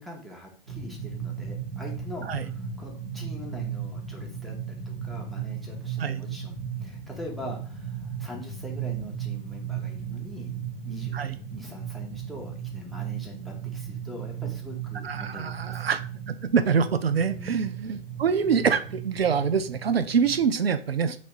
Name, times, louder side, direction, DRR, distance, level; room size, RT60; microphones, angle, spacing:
voice 1, 0.0-15.8 17.3-17.7, equal, ahead, 0.5 m, -43 dB
sound 1, 0.7-20.5, right 8 dB, 60° right, 1.4 m, -36 dB
voice 2, 15.0-21.2, right 6 dB, 80° right, 0.5 m, -25 dB
2.9 x 2.8 x 4.4 m
figure-of-eight pair, 105°, 30 cm